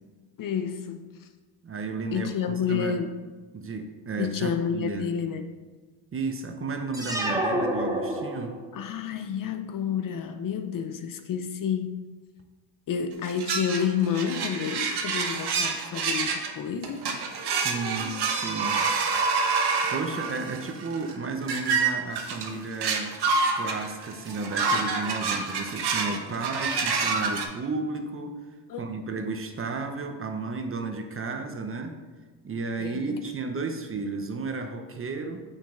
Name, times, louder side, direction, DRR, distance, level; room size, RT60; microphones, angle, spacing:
voice 1, 0.4-1.3 2.1-3.2 4.2-5.5 8.7-12.0 12.9-17.1 18.7-18.9 19.4-19.7 28.7-28.8 32.8-33.2, left 7 dB, 45° left, 8 dB, 0.6 m, -30 dB
voice 2, 1.6-3.0 3.5-5.1 6.1-8.6 17.4-18.8 19.4-19.6 19.8-23.2 23.5-28.4 28.8-32.0 32.4-35.4, right 3 dB, 30° right, 5 dB, 0.8 m, -33 dB
sound 1, 6.9-8.8, right 1 dB, 10° right, 1.1 m, -28 dB
sound 2, 13.2-16.5 16.8-27.4, right 4 dB, 55° right, 1.2 m, -27 dB
6.7 x 6.2 x 3.8 m, 1.4 s
cardioid pair, 95°, 46 cm